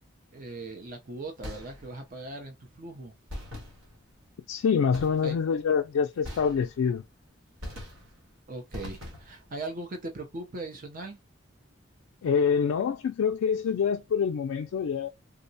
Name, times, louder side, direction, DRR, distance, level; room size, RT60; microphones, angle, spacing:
voice 1, 0.3-3.1 5.2-5.4 8.5-11.2, right 2 dB, 45° right, 0.5 m, -39 dB
sound 1, 1.4-2.1 3.3-4.2 4.9-5.5 6.2-7.0 7.6-8.3 8.7-9.5, left 1 dB, 80° right, 1.4 m, -42 dB
voice 2, 4.5-7.0 12.2-15.1, left 6 dB, 85° left, 0.3 m, -26 dB
3.7 x 2.1 x 2.6 m
head